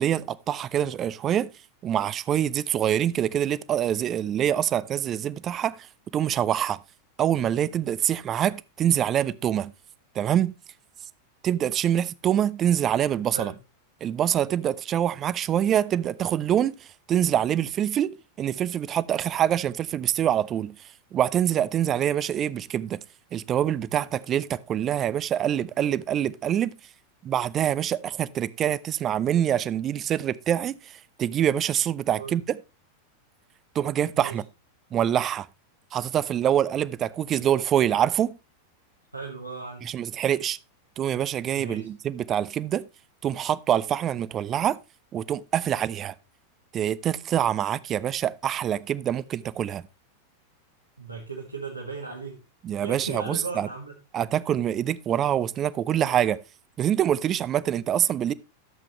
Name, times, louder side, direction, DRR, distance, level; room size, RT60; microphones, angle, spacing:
voice 1, 0.0-1.5 1.8-5.9 6.1-6.8 7.2-9.7 10.1-10.5 11.4-13.5 14.0-16.7 17.1-20.7 21.1-23.0 23.3-26.7 27.2-32.6 33.7-34.4 34.9-35.5 35.9-38.3 39.8-40.6 41.0-42.8 43.2-44.8 45.1-46.1 46.7-49.8 52.6-53.7 54.1-56.4 56.8-58.3, right 10 dB, 30° right, 0.5 m, -25 dB
voice 2, 39.1-39.9 41.5-41.9 51.0-52.4 52.7-53.9, right 4 dB, 85° right, 1.6 m, -36 dB
12.5 x 7.6 x 3.1 m
figure-of-eight pair, 90°, 0 cm